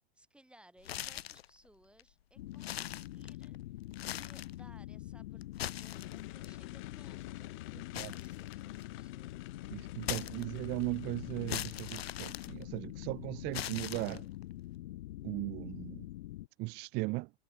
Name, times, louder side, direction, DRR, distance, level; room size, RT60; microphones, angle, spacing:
voice 1, 0.1-3.6 4.0-9.3 10.0-10.5, right 1 dB, 5° right, 4.9 m, -63 dB
sound 1, 0.8-1.5 2.0-2.1 2.5-3.6 3.9-4.6 5.4-6.5 7.9-9.0 10.0-10.8 11.5-13.0 13.5-14.4, left 12 dB, 80° left, 0.5 m, -41 dB
sound 2, 2.4-16.5, left 15 dB, 60° left, 1.0 m, -45 dB
sound 3, 5.9-12.5, left 23 dB, 40° left, 1.9 m, -53 dB
voice 2, 9.7-14.3 15.2-16.1 16.6-17.3, right 25 dB, 35° right, 0.5 m, -37 dB
figure-of-eight pair, 95°, 31 cm